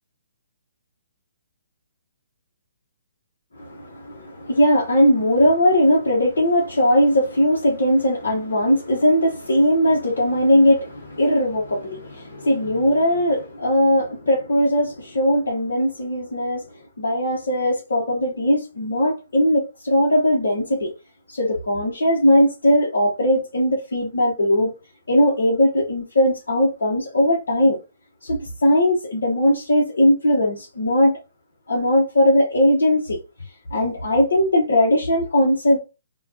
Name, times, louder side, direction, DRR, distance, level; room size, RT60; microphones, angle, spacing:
voice 1, 3.6-16.6 17.0-20.9 21.3-24.7 25.1-27.8 28.2-31.2 31.7-33.2 33.7-35.8, equal, 70° left, 1.0 m, -19 dB
5.5 x 2.4 x 2.7 m
hypercardioid pair, 135°, 0 cm